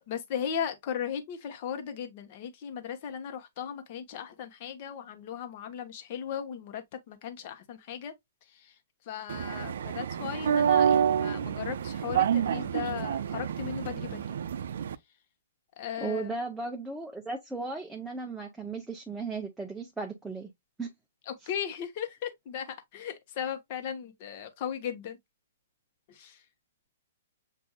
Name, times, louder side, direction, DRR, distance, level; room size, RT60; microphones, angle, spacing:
voice 1, 0.1-8.1 8.5-8.7 9.1-14.2 15.8-16.3 21.3-25.2 26.1-26.4, left 8 dB, 45° left, 1.0 m, -37 dB
sound 1, 9.3-14.9, right 8 dB, 70° right, 0.4 m, -28 dB
voice 2, 16.0-20.5 20.8-20.9, right 3 dB, 5° right, 0.6 m, -36 dB
7.1 x 2.6 x 2.3 m
hypercardioid pair, 145°, 0 cm